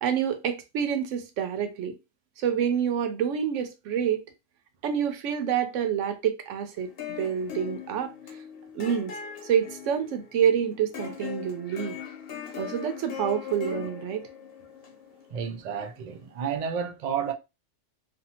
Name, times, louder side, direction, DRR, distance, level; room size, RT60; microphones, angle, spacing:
voice 1, 0.0-2.0 2.4-4.2 4.8-8.1 8.7-9.1 9.4-12.0 12.6-14.2, right 8 dB, 85° right, 0.9 m, -27 dB
sound 1, 6.8-16.0, left 7 dB, 55° left, 0.8 m, -40 dB
voice 2, 15.3-17.3, right 7 dB, 70° right, 0.4 m, -31 dB
2.6 x 2.3 x 2.8 m
omnidirectional pair, 1.3 m